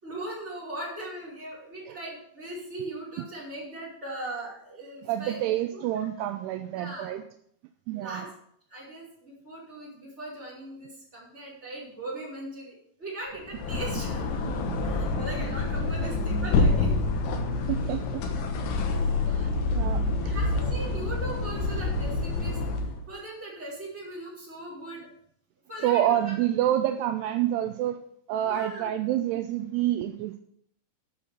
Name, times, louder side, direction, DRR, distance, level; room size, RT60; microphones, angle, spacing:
voice 1, 0.0-6.1 6.7-7.1 7.9-8.3 8.7-14.2 14.8-16.9 20.2-25.1 25.7-26.4 28.4-28.9, right 2 dB, 15° right, -6 dB, 4.8 m, -39 dB
voice 2, 5.0-7.2 7.9-8.3 16.0-16.1 17.7-18.5 19.3-20.2 25.8-28.0 28.3-30.4, right 12 dB, 85° right, 7 dB, 2.4 m, -28 dB
sound 1, 13.4-23.0, left 3 dB, 70° left, 3.3 m, -27 dB
9.8 x 7.4 x 7.1 m, 0.69 s
omnidirectional pair, 5.2 m